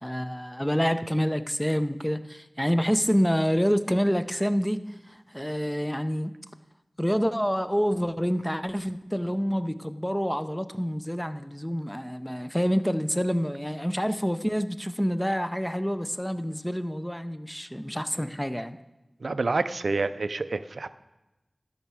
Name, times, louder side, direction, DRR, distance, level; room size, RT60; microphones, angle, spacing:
voice 1, 0.0-4.8 5.1-6.3 7.0-18.8, equal, 5° left, 11 dB, 0.6 m, -27 dB
voice 2, 19.2-20.9, right 3 dB, 85° right, 12 dB, 0.4 m, -28 dB
12.5 x 5.6 x 6.2 m, 1.0 s
wide cardioid pair, 45°, 0 cm